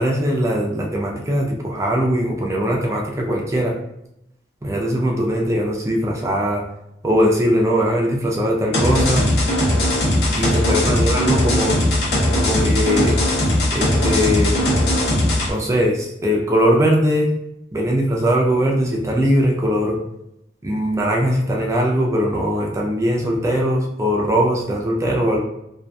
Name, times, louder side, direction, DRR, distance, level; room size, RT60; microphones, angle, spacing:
voice 1, 0.0-3.7 4.6-6.6 7.0-9.3 10.3-11.8 12.4-13.2 13.7-14.6 15.5-17.3 17.7-20.0 20.6-25.4, equal, 15° right, -1 dB, 0.4 m, -20 dB
sound 1, 8.7-15.5, left 1 dB, 65° left, 0.7 m, -19 dB
2.5 x 2.3 x 2.2 m, 0.82 s
head